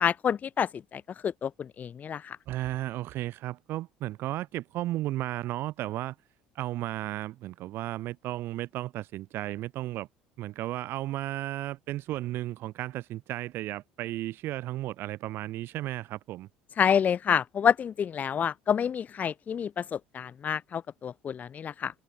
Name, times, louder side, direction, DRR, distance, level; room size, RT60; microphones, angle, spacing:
voice 1, 0.0-2.4 16.8-22.0, left 8 dB, 35° left, 1.1 m, -28 dB
voice 2, 2.5-6.2 6.5-10.1 10.4-16.5, right 15 dB, 50° right, 2.1 m, -34 dB
figure-of-eight pair, 60°, 5 cm